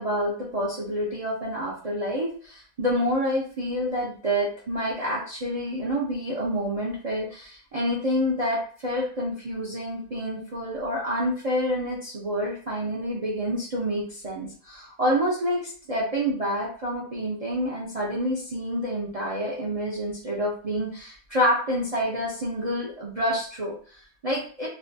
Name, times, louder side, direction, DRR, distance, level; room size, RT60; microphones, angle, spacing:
voice 1, 0.0-24.7, equal, 75° right, -4 dB, 0.3 m, -28 dB
2.6 x 2.1 x 2.6 m, 0.44 s
omnidirectional pair, 1.5 m